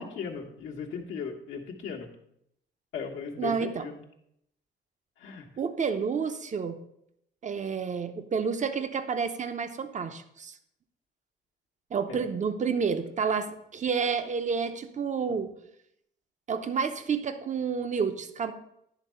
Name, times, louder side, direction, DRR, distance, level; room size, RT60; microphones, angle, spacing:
voice 1, 0.0-2.1 2.9-3.9 5.2-5.5 12.1-12.3, left 6 dB, 75° left, -2 dB, 1.2 m, -37 dB
voice 2, 3.4-3.9 5.6-6.8 7.4-10.5 11.9-15.5 16.5-18.5, right 6 dB, 40° right, 9 dB, 0.8 m, -30 dB
10.5 x 3.6 x 5.5 m, 0.76 s
cardioid pair, 90°, 20 cm